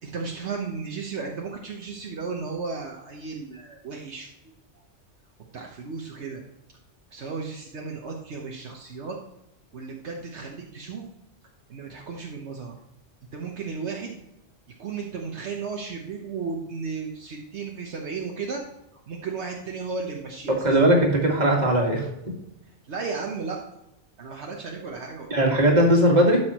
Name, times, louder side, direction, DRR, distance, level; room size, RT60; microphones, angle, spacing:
voice 1, 0.0-4.3 5.5-6.4 7.1-9.2 9.7-11.0 11.7-12.7 13.3-14.2 14.8-18.6 18.9-20.6 22.9-23.6 24.2-25.3, right 4 dB, 70° right, 0 dB, 1.2 m, -34 dB
voice 2, 20.5-22.1 25.3-26.4, right 1 dB, 35° right, -1 dB, 2.0 m, -19 dB
12.0 x 6.2 x 3.0 m, 0.87 s
omnidirectional pair, 1.2 m